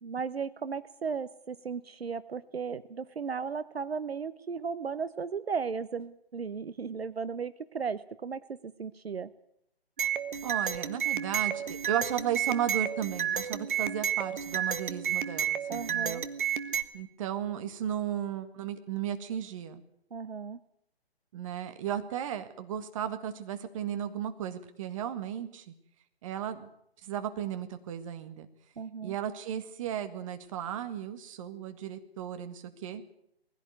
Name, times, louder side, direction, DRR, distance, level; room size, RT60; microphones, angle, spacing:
voice 1, 0.0-9.3 15.7-16.2 20.1-20.6 28.8-29.2, right 5 dB, 70° right, 15 dB, 0.9 m, -35 dB
sound 1, 10.0-16.8, right 9 dB, 50° right, 1.5 m, -31 dB
voice 2, 10.4-16.2 16.9-19.8 21.3-25.7 26.2-26.7 27.0-28.5 29.0-33.0, right 10 dB, 30° right, 8 dB, 1.8 m, -35 dB
20.5 x 16.0 x 9.4 m, 0.76 s
figure-of-eight pair, 140°, 31 cm